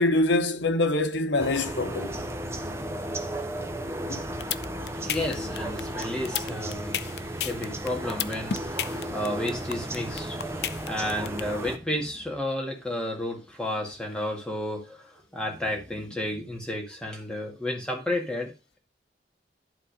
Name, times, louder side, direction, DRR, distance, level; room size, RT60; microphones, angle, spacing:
voice 1, 0.0-2.3 4.1-4.3 4.8-4.9, left 2 dB, 85° left, 1.0 m, -25 dB
sound 1, 1.4-11.8, right 1 dB, 15° right, 0.7 m, -34 dB
sound 2, 4.2-11.4, left 9 dB, 65° left, 0.5 m, -31 dB
voice 2, 5.0-18.8, left 1 dB, 5° left, 2.0 m, -32 dB
11.0 x 3.8 x 5.0 m
head